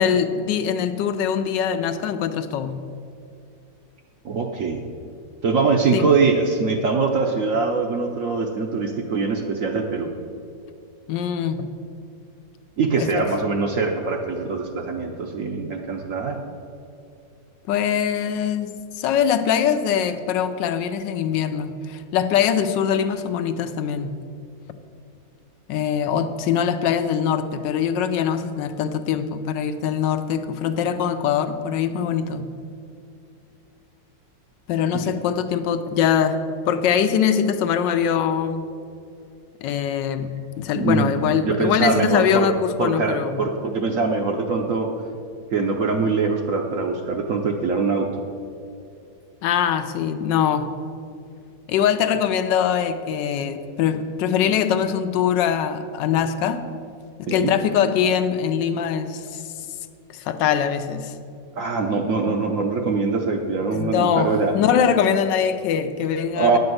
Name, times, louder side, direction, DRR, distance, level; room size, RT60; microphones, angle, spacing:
voice 1, 0.0-2.8 5.9-6.1 11.1-11.7 13.0-13.1 17.7-24.2 25.7-32.5 34.7-38.7 39.6-43.4 49.4-50.7 51.7-56.7 57.2-59.4 60.1-61.1 63.7-66.6, left 8 dB, 80° left, 9 dB, 1.2 m, -22 dB
voice 2, 4.2-4.8 5.4-10.1 12.8-16.4 40.8-41.1 41.4-42.5 42.8-44.9 45.5-48.2 57.3-57.5 61.5-64.5 66.4-66.6, right 4 dB, 60° right, 3 dB, 0.9 m, -23 dB
9.7 x 5.2 x 7.8 m, 2.4 s
omnidirectional pair, 2.0 m